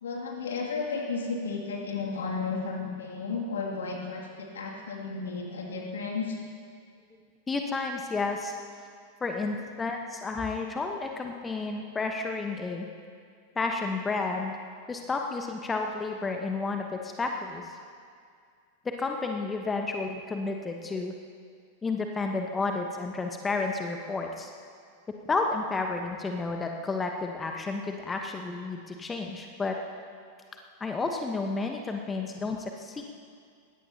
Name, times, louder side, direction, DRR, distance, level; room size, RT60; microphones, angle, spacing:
voice 1, 0.0-6.4 9.4-9.7, left 4 dB, 65° left, 0 dB, 2.5 m, -33 dB
voice 2, 7.5-8.6 9.2-12.9 13.6-14.6 14.9-17.8 18.8-21.1 21.8-24.5 25.3-29.8 30.8-33.1, left 3 dB, 15° left, 3 dB, 1.1 m, -31 dB
21.5 x 17.0 x 2.9 m, 2.2 s
figure-of-eight pair, 90°, 0 cm